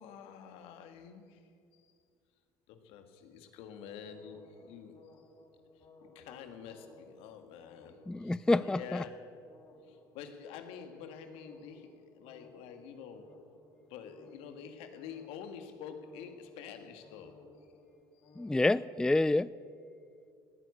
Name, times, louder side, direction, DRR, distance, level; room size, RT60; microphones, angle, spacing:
voice 1, 0.0-1.9 2.7-5.2 5.7-9.5 9.8-13.4 13.9-17.4 18.1-18.4, left 7 dB, 70° left, 8 dB, 1.7 m, -48 dB
sound 1, 3.7-19.2, left 2 dB, 50° left, 2.5 m, -59 dB
voice 2, 8.1-9.0 18.4-19.5, left 2 dB, 5° left, 18 dB, 0.3 m, -28 dB
18.0 x 9.5 x 8.3 m, 2.4 s
hypercardioid pair, 65°, 10 cm